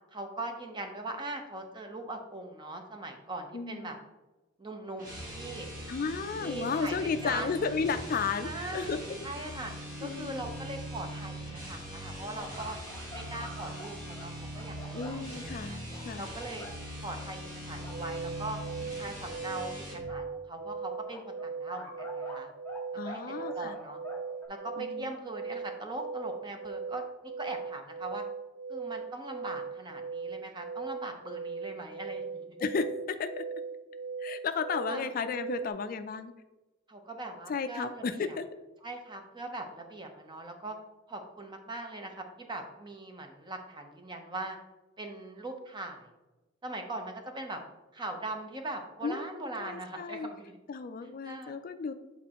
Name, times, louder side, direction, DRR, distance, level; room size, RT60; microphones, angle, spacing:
voice 1, 0.1-4.0 4.6-5.7 6.4-7.6 8.4-9.7 10.0-12.8 13.1-14.8 15.1-15.8 16.2-16.7 17.0-18.6 19.0-22.5 23.0-24.0 24.5-28.2 28.7-32.5 34.9-35.1 36.9-38.4 38.8-40.8 41.1-44.6 45.0-46.1 46.6-47.6 47.9-50.6 51.2-51.6, right 2 dB, 25° right, 4 dB, 0.7 m, -41 dB
voice 2, 3.5-4.0 5.9-9.2 10.0-10.4 14.9-16.3 23.0-23.8 24.8-25.1 32.6-33.4 34.2-36.3 37.5-38.4 49.0-49.2 49.6-50.3 50.7-51.9, left 5 dB, 45° left, 9 dB, 0.3 m, -33 dB
sound 1, 4.9-20.1, right 1 dB, 45° right, 1.5 m, -41 dB
sound 2, 12.4-15.2 15.9-16.7 17.2-17.3 17.7-18.0 18.6-18.7 20.1-20.2 21.1-22.8 23.1-24.5, left 1 dB, 10° left, 1.5 m, -46 dB
sound 3, 17.8-35.7, right 5 dB, 70° right, 0.3 m, -39 dB
8.4 x 4.2 x 2.9 m, 1.1 s
head